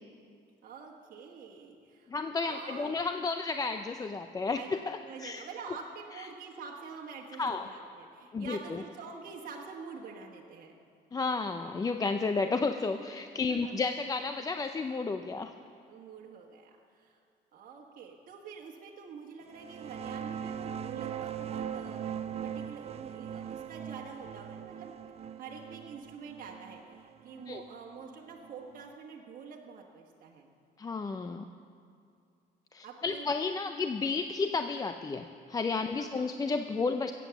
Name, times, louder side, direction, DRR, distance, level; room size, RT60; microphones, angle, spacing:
voice 1, 0.6-2.1 2.4-3.0 4.5-4.7 5.0-10.8 13.5-13.7 15.9-17.2 17.5-22.1 22.4-24.9 25.4-30.5 32.8-33.3 35.9-36.3, right 5 dB, 55° right, -1 dB, 1.5 m, -46 dB
voice 2, 2.1-5.4 6.2-6.3 7.4-7.7 8.3-8.8 11.1-15.5 27.5-27.6 30.8-31.5 32.7-37.1, left 4 dB, 20° left, 7 dB, 0.5 m, -32 dB
sound 1, 19.5-28.8, right 8 dB, 35° right, 0.5 m, -40 dB
16.5 x 8.4 x 7.1 m, 2.4 s
cardioid pair, 120°, 17 cm